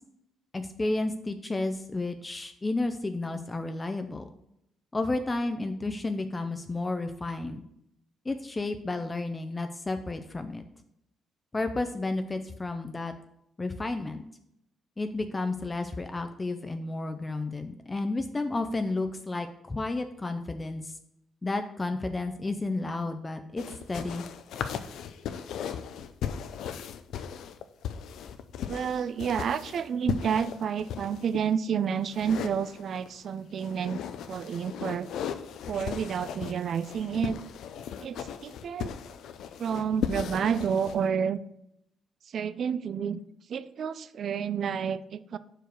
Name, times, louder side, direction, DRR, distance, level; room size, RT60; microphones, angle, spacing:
voice 1, 0.5-4.3 4.9-7.6 8.3-10.6 11.5-13.1 13.6-14.2 15.0-21.0 21.4-24.2, left 2 dB, 20° left, 7 dB, 0.5 m, -32 dB
sound 1, 23.6-31.4 32.1-33.2 33.6-41.0, left 8 dB, 80° left, 0.4 m, -37 dB
voice 2, 28.7-34.0 34.3-35.1 35.7-37.4 38.0-38.9 39.6-41.4 42.3-43.2 43.5-45.4, right 7 dB, 60° right, 15 dB, 0.4 m, -30 dB
4.9 x 4.7 x 6.2 m, 0.78 s
cardioid pair, 90°, 0 cm